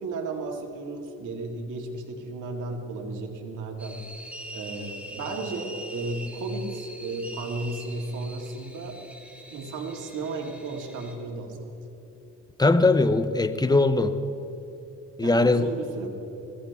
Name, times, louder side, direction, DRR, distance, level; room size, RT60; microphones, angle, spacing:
voice 1, 0.0-4.0 4.5-9.0 9.5-11.7 15.2-16.1, right 3 dB, 80° right, 2.1 m, -34 dB
sound 1, 3.8-11.1, right 1 dB, 5° right, 2.0 m, -43 dB
voice 2, 12.6-14.2 15.2-15.7, left 3 dB, 15° left, 0.7 m, -20 dB
21.5 x 16.0 x 3.5 m
cardioid pair, 90°, 30 cm